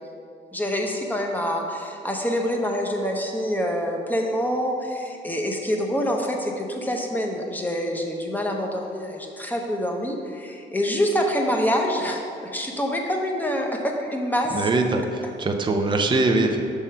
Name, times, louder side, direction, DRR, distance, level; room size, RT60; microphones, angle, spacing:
voice 1, 0.5-14.6, equal, 10° left, 1 dB, 0.8 m, -26 dB
voice 2, 14.5-16.6, right 2 dB, 25° right, 4 dB, 0.5 m, -22 dB
6.1 x 3.7 x 5.6 m, 2.4 s
cardioid pair, 90°, 20 cm